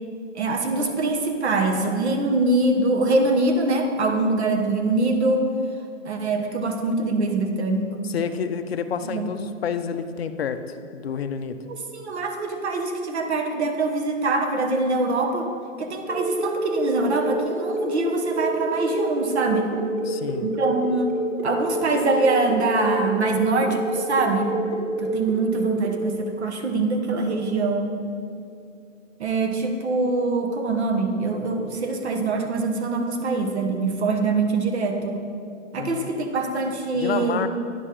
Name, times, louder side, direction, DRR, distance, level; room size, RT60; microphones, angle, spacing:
voice 1, 0.3-5.5 6.1-7.9 9.0-9.3 11.7-15.5 15.8-19.7 20.4-21.1 21.4-24.5 25.0-28.0 29.2-35.2 35.7-37.4, right 3 dB, 55° right, 4 dB, 1.0 m, -24 dB
voice 2, 8.1-10.6 10.9-11.6 20.1-20.5 35.8-36.1 36.9-37.5, left 7 dB, 50° left, 9 dB, 0.5 m, -29 dB
sound 1, 16.1-25.9, right 1 dB, ahead, 1.5 m, -28 dB
9.9 x 6.4 x 3.7 m, 2.5 s
hypercardioid pair, 170°, 39 cm